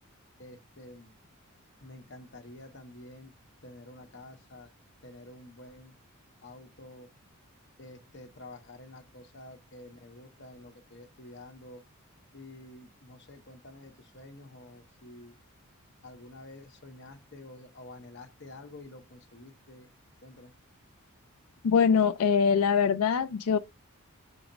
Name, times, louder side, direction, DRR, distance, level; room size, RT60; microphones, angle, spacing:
voice 1, 0.4-1.1 1.8-3.3 3.6-4.7 5.0-5.9 6.4-7.1 7.8-11.8 12.3-15.4 16.0-19.9 20.2-20.5, left 2 dB, 50° left, 1.2 m, -49 dB
voice 2, 21.6-23.6, left 6 dB, 80° left, 0.4 m, -23 dB
6.4 x 2.9 x 5.1 m
head